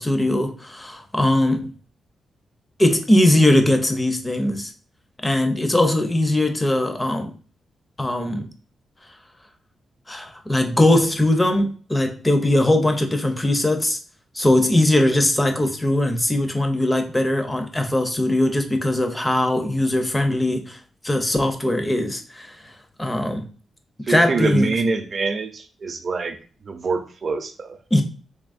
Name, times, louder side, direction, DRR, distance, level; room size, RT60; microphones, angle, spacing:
voice 1, 0.0-1.7 2.8-4.7 5.2-7.3 8.0-8.5 10.1-14.0 14.3-20.8 21.0-22.7 23.0-23.4 24.1-24.7 27.9-28.0, left 1 dB, 15° left, 0.6 m, -20 dB
voice 2, 24.0-26.4 26.6-27.8, right 4 dB, 45° right, 0.6 m, -25 dB
3.8 x 3.5 x 2.5 m
wide cardioid pair, 130°, 0 cm